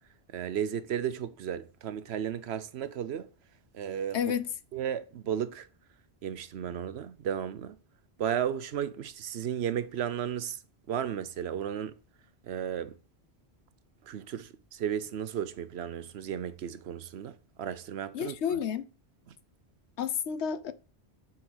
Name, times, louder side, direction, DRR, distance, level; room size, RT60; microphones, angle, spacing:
voice 1, 0.3-3.3 3.7-4.3 4.7-5.7 6.2-7.8 8.2-10.6 10.9-11.9 12.4-13.0 14.0-18.6 19.3-19.4, right 9 dB, 70° right, 0.9 m, -34 dB
voice 2, 4.1-4.5 18.1-18.9 20.0-20.7, left 8 dB, 75° left, 1.1 m, -30 dB
7.5 x 5.7 x 6.3 m
omnidirectional pair, 1.1 m